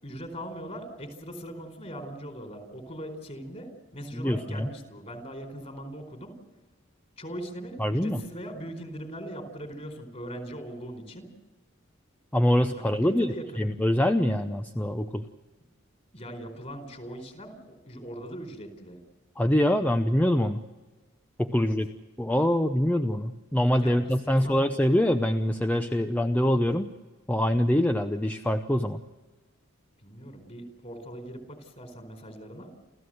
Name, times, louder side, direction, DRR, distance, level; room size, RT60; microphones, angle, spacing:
voice 1, 0.0-6.4 7.2-11.3 12.7-13.6 16.1-19.0 21.6-21.7 23.8-24.0 24.2-24.6 30.0-32.7, equal, 35° left, 6 dB, 4.5 m, -40 dB
voice 2, 4.1-4.7 7.8-8.2 12.3-15.2 19.4-20.6 21.4-21.9 22.2-26.9 27.3-29.0, left 1 dB, 10° left, 6 dB, 0.7 m, -24 dB
29.5 x 14.0 x 7.9 m, 1.2 s
head